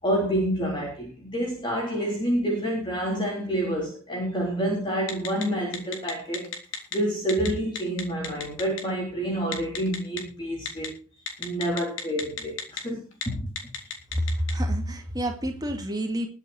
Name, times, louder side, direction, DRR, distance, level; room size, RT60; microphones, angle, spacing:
voice 1, 0.0-6.6 6.9-11.0 11.4-13.5, right 1 dB, 20° left, -2 dB, 3.9 m, -28 dB
Telephone, 5.1-5.4 5.7-6.9 7.3-7.5 7.7-8.8 9.5-10.2 10.7-10.9 11.3-12.8 13.1-13.2 13.6-14.5, left 7 dB, 65° left, 3.6 m, -32 dB
voice 2, 14.2-16.3, equal, 20° right, 4 dB, 2.3 m, -28 dB
21.0 x 8.1 x 4.4 m, 0.34 s
head